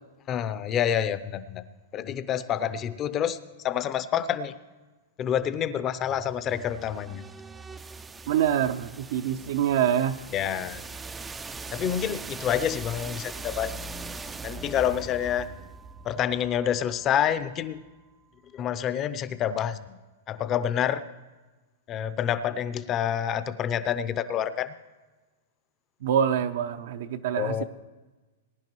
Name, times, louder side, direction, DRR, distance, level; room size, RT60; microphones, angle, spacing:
voice 1, 0.3-1.6 1.9-3.4 3.6-4.5 5.2-7.2 10.3-10.9 11.7-13.7 14.4-15.5 16.0-17.8 18.5-20.0 20.3-21.0 21.9-24.7 27.4-27.6, left 9 dB, 25° left, 13 dB, 0.6 m, -28 dB
sound 1, 6.0-17.9, right 3 dB, 10° right, 0.4 m, -41 dB
voice 2, 8.3-10.2 26.0-27.6, right 9 dB, 65° right, 7 dB, 0.6 m, -25 dB
21.0 x 10.5 x 3.1 m, 1.2 s
hypercardioid pair, 145°, 0 cm